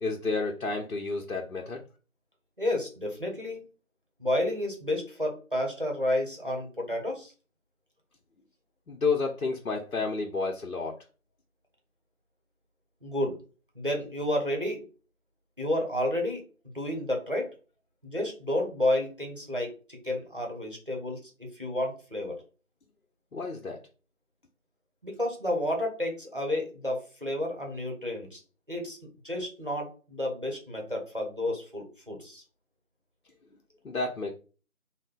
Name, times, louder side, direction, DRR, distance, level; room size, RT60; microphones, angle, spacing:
voice 1, 0.0-1.8 8.9-11.0 23.3-23.8 33.8-34.3, left 4 dB, 80° left, 1 dB, 0.8 m, -30 dB
voice 2, 2.6-3.6 4.2-7.3 13.0-13.4 13.8-14.9 15.6-16.4 16.7-17.5 18.0-22.4 25.0-28.4 28.7-29.0 29.2-32.4, left 1 dB, 40° right, 1 dB, 0.8 m, -31 dB
3.1 x 2.2 x 3.7 m, 0.35 s
figure-of-eight pair, 180°, 42 cm